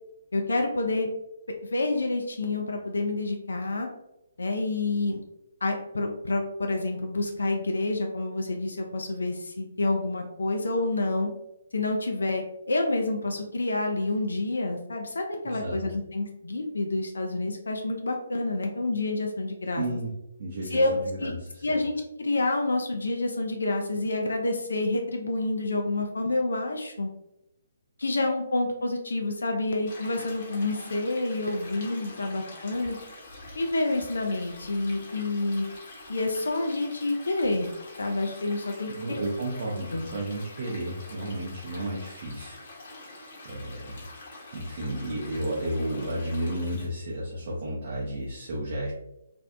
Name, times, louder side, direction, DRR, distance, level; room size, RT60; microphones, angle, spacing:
voice 1, 0.3-1.1 1.6-3.9 4.4-5.2 5.6-11.3 11.7-19.8 20.7-20.9 21.2-21.3 21.6-27.1 28.0-33.0 33.5-35.7 36.1-37.7 38.0-39.2 39.9-40.1, left 2 dB, 65° left, 3 dB, 0.3 m, -28 dB
voice 2, 15.4-15.8 19.8-20.1 20.4-21.8 38.9-43.2 43.4-44.1 44.5-48.9, right 1 dB, 40° right, -6 dB, 0.5 m, -33 dB
Stream, 29.9-46.9, left 2 dB, 45° left, 0.8 m, -46 dB
2.5 x 2.0 x 2.4 m, 0.86 s
figure-of-eight pair, 135°, 0 cm